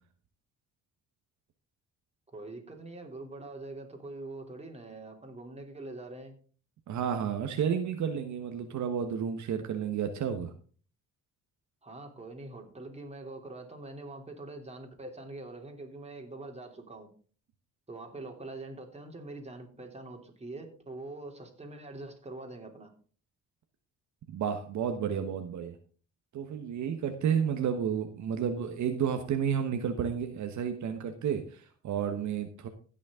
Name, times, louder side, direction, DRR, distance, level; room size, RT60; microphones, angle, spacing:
voice 1, 2.3-6.3 11.8-17.1 17.9-22.9, right 2 dB, 20° right, 2 dB, 3.1 m, -44 dB
voice 2, 6.9-10.5 24.3-25.8 26.3-32.7, right 8 dB, 70° right, 6 dB, 1.3 m, -31 dB
16.5 x 6.4 x 3.7 m, 0.41 s
cardioid pair, 90°, 30 cm